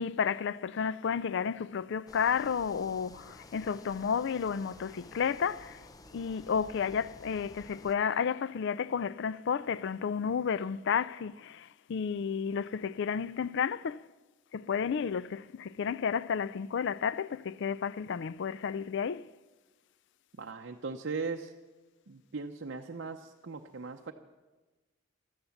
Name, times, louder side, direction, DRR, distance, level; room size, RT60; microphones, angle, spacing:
voice 1, 0.0-5.9 6.1-14.0 14.5-19.3, left 6 dB, 60° left, 0.4 m, -32 dB
sound 1, 2.1-8.0, left 2 dB, 20° left, 0.6 m, -53 dB
voice 2, 20.4-21.5 22.1-24.1, right 4 dB, 60° right, 0.7 m, -38 dB
15.0 x 12.5 x 7.0 m
head